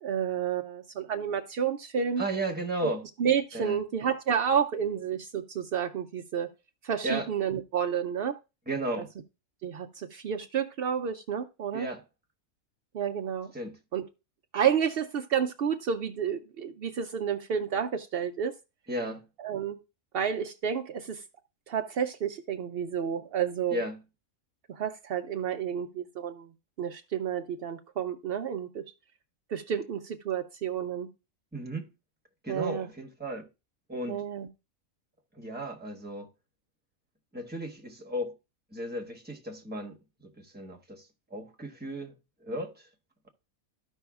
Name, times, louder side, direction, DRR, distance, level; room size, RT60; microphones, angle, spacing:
voice 1, 0.0-2.2 2.8-2.9 3.2-6.5 6.8-8.3 9.6-11.9 12.9-13.5 13.9-14.0 14.5-18.5 19.4-19.8 20.1-21.2 21.7-23.8 24.7-26.5 26.8-28.8 29.5-31.1 32.5-32.9 34.1-34.5, right 8 dB, 85° right, 0.5 m, -30 dB
voice 2, 2.2-3.1 3.5-3.8 7.0-7.3 8.7-9.1 11.7-12.0 13.5-13.8 18.9-19.3 23.7-24.0 31.5-31.9 32.4-33.5 33.9-34.2 35.3-36.3 37.3-38.4 38.7-40.0 40.4-42.1 42.4-42.9, right 1 dB, 10° right, 0.9 m, -34 dB
13.5 x 5.4 x 2.3 m
omnidirectional pair, 1.6 m